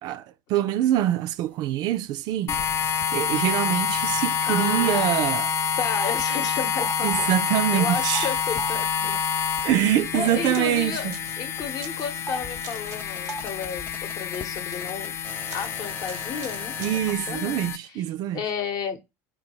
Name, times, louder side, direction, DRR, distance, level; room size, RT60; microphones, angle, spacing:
voice 1, 0.0-2.6 3.1-5.5 7.0-8.3 9.6-11.1 16.8-18.4, right 12 dB, 55° right, 0.4 m, -24 dB
sound 1, 2.5-17.8, left 7 dB, 35° left, 0.3 m, -28 dB
sound 2, 3.8-4.3 4.6-5.1 5.9-6.1 6.7-7.2 8.1-8.7 12.2-12.4 12.7-17.1, right 1 dB, 20° left, 0.8 m, -38 dB
voice 2, 4.4-5.2 5.8-7.3 7.7-9.2 10.1-15.1 15.5-16.8 17.3-18.0 18.3-19.0, left 6 dB, 50° left, 0.8 m, -32 dB
sound 3, 10.4-10.8 11.1-11.4 11.7-12.2 12.6-13.0 13.3-13.7 14.3-14.9 15.5-15.7 16.0-17.0, right 7 dB, 90° right, 0.7 m, -44 dB
3.6 x 2.3 x 2.9 m
supercardioid pair, 90°, 8 cm